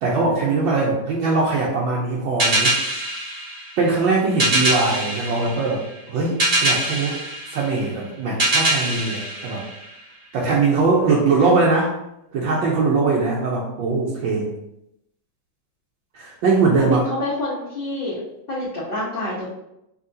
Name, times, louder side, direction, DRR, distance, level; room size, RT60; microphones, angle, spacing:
voice 1, 0.0-2.8 3.8-7.2 7.5-9.6 10.3-12.0 12.3-14.5 16.1-17.0, right 3 dB, 75° right, -4 dB, 1.4 m, -21 dB
sound 1, 2.4-10.3, right 1 dB, 50° right, 0.4 m, -24 dB
voice 2, 16.8-18.2 18.5-19.5, left 1 dB, 35° left, -10 dB, 1.0 m, -27 dB
5.5 x 2.9 x 2.6 m, 0.83 s
omnidirectional pair, 2.3 m